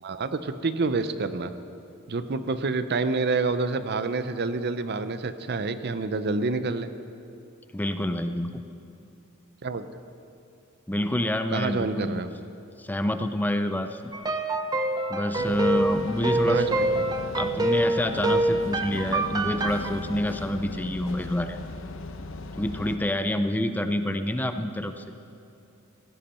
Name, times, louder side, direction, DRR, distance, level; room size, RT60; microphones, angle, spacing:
voice 1, 0.0-1.5 2.1-6.9 9.6-9.9 11.5-12.3 16.4-16.8, right 3 dB, 50° right, 11 dB, 0.7 m, -28 dB
voice 2, 7.7-8.6 10.9-12.2 12.8-14.1 15.1-16.7 17.3-21.6 22.6-25.0, left 1 dB, 10° left, 8 dB, 0.5 m, -27 dB
sound 1, 14.1-19.9, right 1 dB, 20° right, 0.8 m, -26 dB
sound 2, 15.4-23.0, left 2 dB, 65° left, 0.8 m, -38 dB
17.0 x 15.5 x 4.4 m, 2.5 s
head